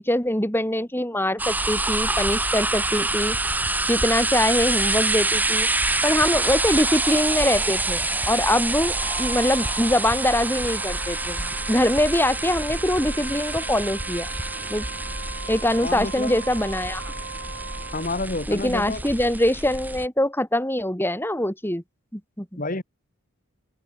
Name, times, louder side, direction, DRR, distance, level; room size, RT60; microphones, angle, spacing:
voice 1, 0.0-3.4 3.9-5.7 6.0-14.3 14.7-14.8 15.5-17.1 18.5-21.8 22.1-22.6, left 1 dB, 10° left, 3.1 m, -23 dB
sound 1, 1.4-20.1, right 2 dB, 10° right, 1.8 m, -26 dB
Wind instrument woodwind instrument, 8.9-18.2, right 4 dB, 60° right, 7.1 m, -39 dB
voice 2, 15.8-16.3 17.9-19.0 22.6-22.8, left 2 dB, 40° left, 1.9 m, -29 dB
head